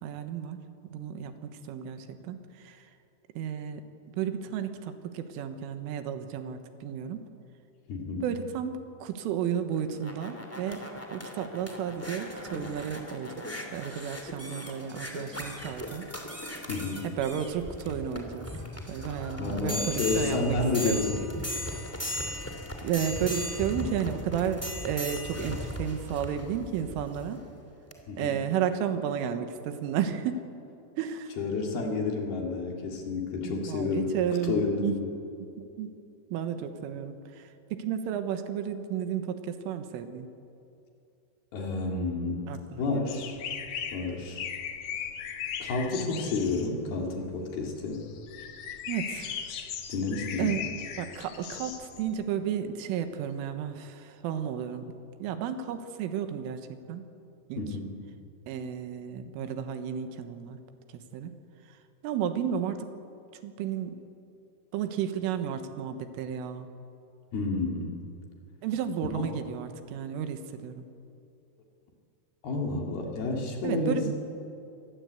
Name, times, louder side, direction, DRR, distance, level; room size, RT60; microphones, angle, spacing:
voice 1, 0.0-2.8 3.4-3.8 4.2-7.2 8.2-10.8 11.1-16.1 17.0-18.5 18.9-21.1 22.8-27.4 28.2-30.4 31.0-31.3 33.4-34.9 35.6-35.9 36.3-40.3 42.5-43.2 48.9-49.4 50.4-50.6 51.0-54.9 55.2-57.1 57.5-57.6 58.5-60.6 60.9-61.4 62.0-62.9 63.4-64.0 64.7-66.7 68.6-70.9 73.6-74.1, right 8 dB, 85° right, 8 dB, 3.8 m, -33 dB
voice 2, 7.9-8.2 16.7-17.1 19.4-21.3 28.1-28.4 31.4-34.1 34.5-35.1 41.5-43.4 43.9-44.4 45.6-48.0 49.9-50.5 57.6-57.9 67.3-68.0 69.1-69.2 72.4-74.0, left 3 dB, 55° left, 1 dB, 4.1 m, -30 dB
sound 1, 9.7-27.3 27.9-28.0, left 1 dB, 10° left, 1.0 m, -37 dB
sound 2, 43.1-52.2, left 8 dB, 90° left, 1.6 m, -38 dB
24.5 x 20.0 x 8.3 m, 2.6 s
omnidirectional pair, 5.7 m